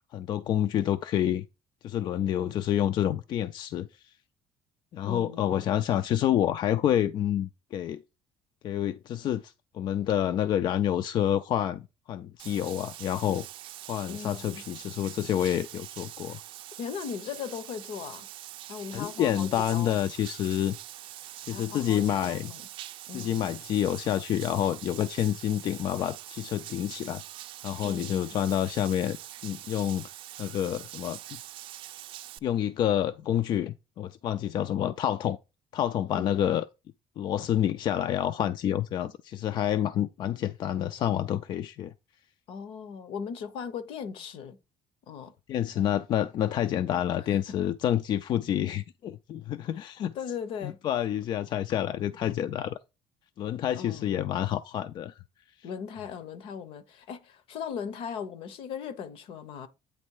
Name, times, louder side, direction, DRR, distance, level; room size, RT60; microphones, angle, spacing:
voice 1, 0.0-1.4 1.8-4.1 4.9-8.0 8.6-13.5 13.9-16.4 18.9-20.8 21.4-22.5 23.1-27.2 27.6-29.2 29.4-30.1 30.4-31.4 32.4-35.4 35.7-36.6 37.2-41.9 45.5-50.1 50.6-52.8 53.4-55.2 55.6-55.7, left 11 dB, 55° left, 0.3 m, -28 dB
voice 2, 5.0-5.6 14.1-14.6 16.8-18.3 18.7-20.0 21.5-22.6 23.1-23.6 27.8-28.3 36.1-36.6 42.5-44.6 45.1-45.3 45.7-45.9 47.5-47.6 49.7-50.8 53.7-54.2 55.6-59.7, left 7 dB, 70° left, 0.9 m, -38 dB
Bathtub (filling or washing), 12.4-32.4, right 14 dB, 65° right, 0.4 m, -44 dB
8.7 x 3.2 x 4.7 m
cardioid pair, 130°, 9 cm